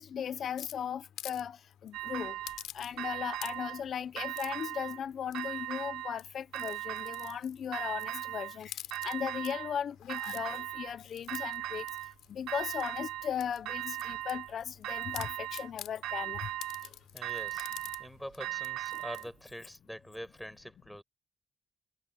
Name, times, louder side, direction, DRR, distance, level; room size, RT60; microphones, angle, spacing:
voice 1, 0.0-2.4 2.7-11.8 12.3-16.5, left 8 dB, 60° left, 0.9 m, -37 dB
sound 1, 0.6-1.4 1.7-1.9 2.4-3.1 3.3-3.8 4.3-4.7 5.3-5.7 6.1-8.2 8.6-9.5 9.9-10.4 11.0-13.0 13.4-14.8 15.1-15.9 16.6-18.0 18.3-18.4 18.6-19.3, left 13 dB, 85° left, 7.5 m, -47 dB
sound 2, 1.9-2.6 3.0-3.8 4.2-5.0 5.3-6.2 6.5-7.4 7.7-8.6 8.9-9.8 10.1-11.0 11.3-12.1 12.5-13.3 13.7-14.5 14.8-15.7 16.0-16.9 17.2-19.3, right 15 dB, 90° right, 1.0 m, -38 dB
voice 2, 16.8-17.7 18.0-21.0, equal, ahead, 6.5 m, -45 dB
cardioid pair, 90°, 0 cm